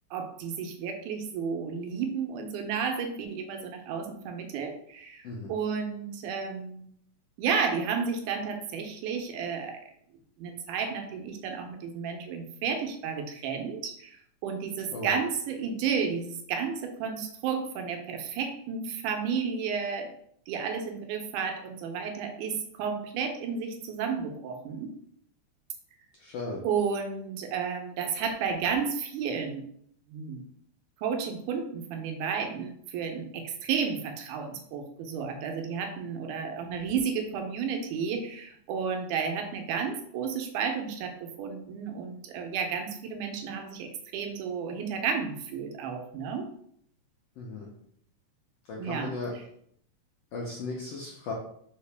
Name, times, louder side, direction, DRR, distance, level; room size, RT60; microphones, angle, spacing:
voice 1, 0.1-6.9 7.4-9.8 10.4-20.1 20.5-24.9 26.6-29.6 30.1-30.4 31.0-46.5 48.8-49.5, right 6 dB, 80° right, 4 dB, 2.0 m, -32 dB
voice 2, 26.2-26.6 47.4-47.7 48.7-49.3 50.3-51.3, left 3 dB, 80° left, -3 dB, 1.4 m, -36 dB
4.7 x 2.8 x 3.3 m, 0.67 s
omnidirectional pair, 3.6 m